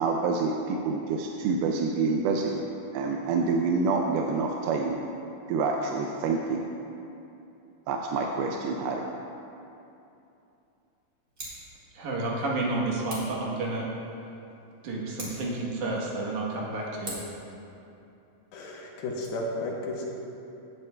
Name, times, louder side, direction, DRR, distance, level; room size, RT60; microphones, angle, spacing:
voice 1, 0.0-2.5 2.9-5.0 5.5-6.6 7.9-9.0, right 4 dB, 90° right, 1 dB, 2.4 m, -27 dB
Scissors, 11.3-11.7 13.1-13.4 15.1-15.6 17.0-17.4 19.0-19.3, right 2 dB, 35° right, 2.3 m, -41 dB
voice 2, 11.9-13.8 14.8-17.3, right 2 dB, 65° right, -3 dB, 2.3 m, -30 dB
voice 3, 18.5-20.1, left 1 dB, 80° left, -2 dB, 2.8 m, -33 dB
15.5 x 9.0 x 2.2 m, 2.8 s
omnidirectional pair, 4.3 m